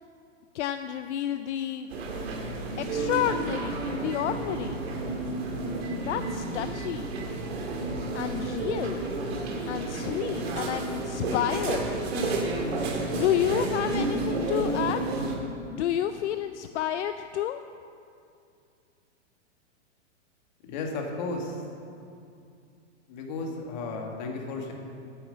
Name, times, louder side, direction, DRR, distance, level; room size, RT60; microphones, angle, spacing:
voice 1, 0.5-1.9 2.8-4.8 6.0-7.3 8.1-9.1 9.7-12.0 13.1-15.2 15.7-17.6, left 11 dB, 70° left, 9 dB, 0.5 m, -30 dB
sound 1, 1.9-15.4, right 2 dB, 55° right, 1.9 m, -31 dB
voice 2, 20.6-21.6 23.1-24.7, left 3 dB, 35° left, 1 dB, 1.6 m, -34 dB
9.6 x 7.1 x 7.6 m, 2.5 s
hypercardioid pair, 165°, 36 cm